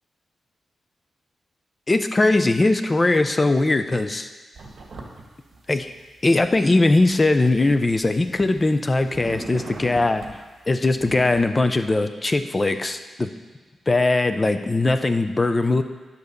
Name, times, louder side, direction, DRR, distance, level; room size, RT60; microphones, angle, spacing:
voice 1, 1.9-4.3 5.7-5.9 6.2-10.2 10.7-13.3 13.9-15.8, left 2 dB, 25° left, 9 dB, 0.5 m, -20 dB
sound 1, 4.6-5.2 5.5-6.5 7.1-8.7 9.0-10.4 11.0-11.4, right 2 dB, 55° right, 2.0 m, -39 dB
10.5 x 4.1 x 6.6 m, 1.3 s
cardioid pair, 100°, 0 cm